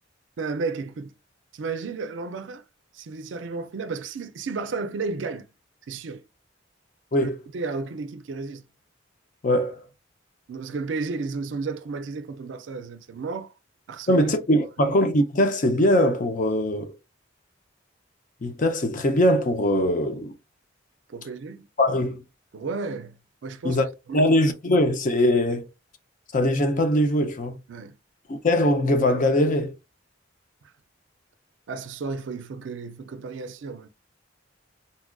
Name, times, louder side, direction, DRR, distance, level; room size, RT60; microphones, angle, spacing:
voice 1, 0.4-1.1 1.5-2.6 2.9-5.5 5.9-6.2 7.2-8.6 10.5-13.5 13.9-14.3 21.1-21.7 22.5-23.8 24.1-24.3 27.7-27.9 31.7-33.9, right 4 dB, 70° right, 0.4 m, -33 dB
voice 2, 9.4-9.8 14.1-16.9 18.4-20.3 21.8-22.2 23.6-23.8 24.1-25.7 26.3-27.6 28.3-29.7, left 1 dB, 40° left, 0.5 m, -21 dB
4.0 x 2.4 x 2.2 m
head